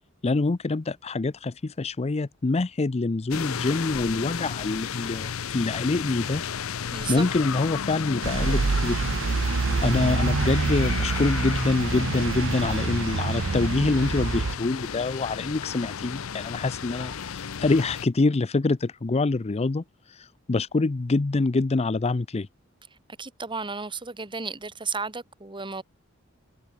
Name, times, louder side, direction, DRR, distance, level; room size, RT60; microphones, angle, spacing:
voice 1, 0.2-6.4 7.1-9.0 9.5-22.5, left 3 dB, 30° left, 0.5 m, -26 dB
sound 1, 3.3-18.1, left 7 dB, 80° left, 0.7 m, -33 dB
voice 2, 6.9-7.2 23.2-25.8, right 4 dB, 25° right, 1.9 m, -33 dB
sound 2, 8.2-14.6, right 4 dB, 65° right, 0.6 m, -26 dB
head